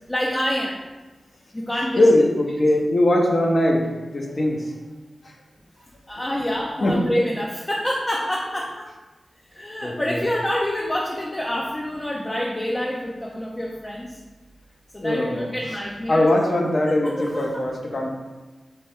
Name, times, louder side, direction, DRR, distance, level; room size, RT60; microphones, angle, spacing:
voice 1, 0.1-0.8 1.5-2.1 6.1-8.9 9.5-14.2 14.9-16.3 17.0-17.7, left 1 dB, 25° left, -1 dB, 0.5 m, -27 dB
voice 2, 2.0-4.7 5.2-5.3 6.8-7.0 9.8-10.2 15.0-15.5 16.1-18.1, left 1 dB, 50° left, 0 dB, 0.8 m, -20 dB
3.4 x 3.3 x 4.2 m, 1.2 s
cardioid pair, 65°, 0 cm